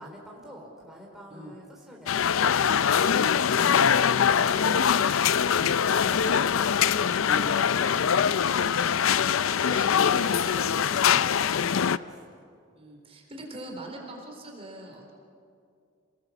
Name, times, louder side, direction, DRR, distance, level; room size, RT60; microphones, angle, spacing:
voice 1, 0.0-3.5 3.9-5.7 6.0-7.2 11.3-12.4, equal, ahead, -3 dB, 3.6 m, -48 dB
sound 1, 2.1-12.0, left 7 dB, 90° left, 0.5 m, -23 dB
voice 2, 3.6-4.0 5.5-5.7 7.3-7.5 9.6-11.2 12.7-15.1, right 1 dB, 30° right, 1 dB, 3.9 m, -41 dB
28.0 x 20.0 x 7.2 m, 2.3 s
head